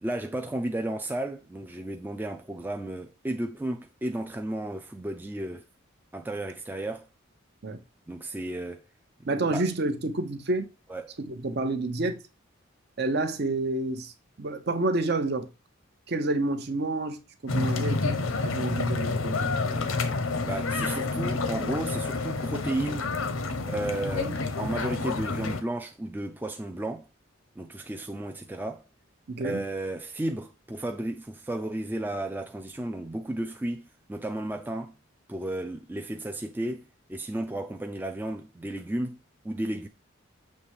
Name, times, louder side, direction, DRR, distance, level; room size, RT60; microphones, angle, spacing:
voice 1, 0.0-5.6 6.1-7.1 8.1-8.9 9.2-9.6 10.9-11.2 19.7-19.9 20.4-23.1 23.7-27.1 27.6-28.9 29.4-34.9 35.3-36.8 37.1-39.2 39.4-39.9, right 1 dB, 10° right, 0.3 m, -33 dB
voice 2, 9.2-10.7 11.2-12.2 13.0-14.1 14.4-15.5 16.1-17.2 17.4-19.4 24.1-24.4 29.3-29.6, right 2 dB, 50° right, 0.7 m, -29 dB
sound 1, 17.5-25.6, left 3 dB, 80° left, 0.8 m, -29 dB
6.7 x 3.2 x 4.7 m
head